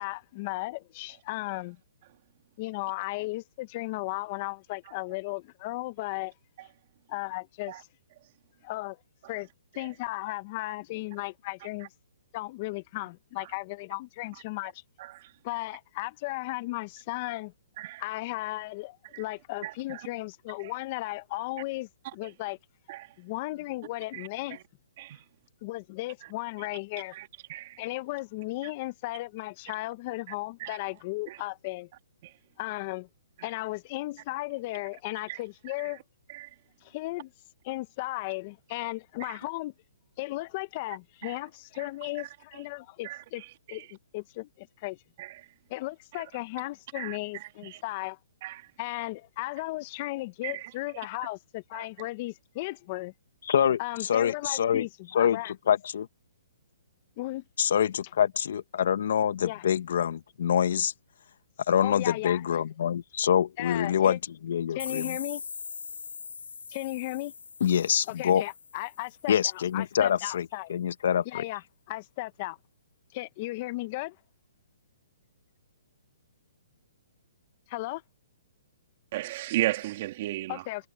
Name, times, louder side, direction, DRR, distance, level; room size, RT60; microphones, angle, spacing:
voice 1, 0.0-1.8 2.6-6.3 7.1-7.9 8.6-9.0 9.3-9.5 9.7-11.9 12.3-14.8 15.4-17.5 18.0-22.6 23.2-24.6 25.6-27.1 27.8-31.9 32.6-33.1 33.4-36.0 36.8-37.3 37.6-39.7 40.2-43.4 43.7-45.0 45.7-48.2 48.8-53.1 53.8-55.5 57.2-57.4 59.4-59.6 61.8-62.4 63.6-64.2 64.7-65.4 66.7-67.3 68.2-70.7 71.3-71.6 71.9-72.6 73.1-74.2 77.7-78.0 80.5-80.9, left 20 dB, 35° left, 0.9 m, -35 dB
voice 2, 19.6-20.0 22.9-23.1 24.1-24.3 25.0-25.2 27.2-27.8 30.6-30.8 31.3-31.4 35.3-35.4 36.3-36.5 41.2-41.3 43.0-43.2 45.2-45.3 47.0-47.2 48.4-48.6 50.4-50.5 51.7-51.8 79.1-80.6, right 16 dB, 45° right, 2.3 m, -34 dB
voice 3, 53.5-54.9 55.1-56.1 57.6-60.9 61.7-65.2 67.6-68.4 69.3-71.4, left 9 dB, 65° left, 1.3 m, -26 dB
sound 1, 64.8-69.5, left 5 dB, 85° left, 6.0 m, -41 dB
hypercardioid pair, 145°, 0 cm